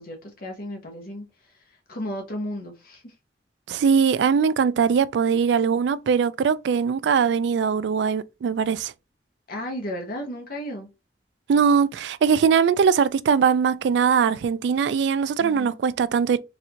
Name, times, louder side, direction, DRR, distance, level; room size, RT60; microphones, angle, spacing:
voice 1, 0.0-1.6 1.9-3.1 9.5-10.9 15.4-15.8, equal, 55° left, 0.9 m, -34 dB
voice 2, 3.7-8.9 11.5-16.4, right 6 dB, 75° right, 0.3 m, -21 dB
4.0 x 2.5 x 2.8 m
head